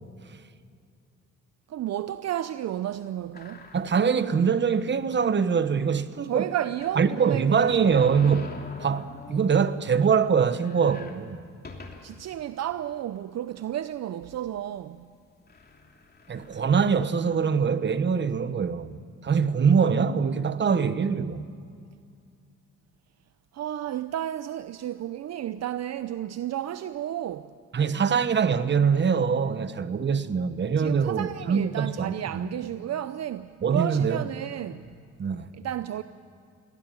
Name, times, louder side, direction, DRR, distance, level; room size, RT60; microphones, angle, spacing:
voice 1, 1.7-3.7 6.3-8.1 12.0-15.1 23.5-27.5 30.8-34.9 35.5-36.0, right 11 dB, 60° right, 0.7 m, -32 dB
sound 1, 3.3-4.2 4.8-4.9 5.1-5.2 6.8-9.7 10.1-10.2 10.4-12.3 12.9-13.0 13.9-14.2 15.0-15.1 15.5-17.0, left 4 dB, 30° left, 3.0 m, -45 dB
voice 2, 3.7-6.5 7.0-11.4 16.3-21.5 27.7-32.5 33.6-34.2 35.2-35.5, right 6 dB, 35° right, 1.1 m, -24 dB
22.0 x 17.0 x 9.0 m
cardioid pair, 90°, 30 cm